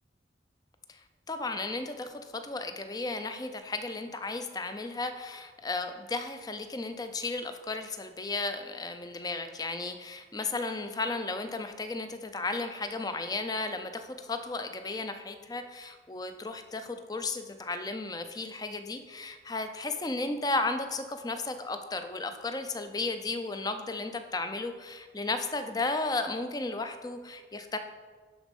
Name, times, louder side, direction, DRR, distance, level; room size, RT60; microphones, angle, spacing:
voice 1, 0.9-27.8, left 3 dB, 20° left, 8 dB, 0.5 m, -34 dB
11.0 x 4.1 x 5.4 m, 1.5 s
head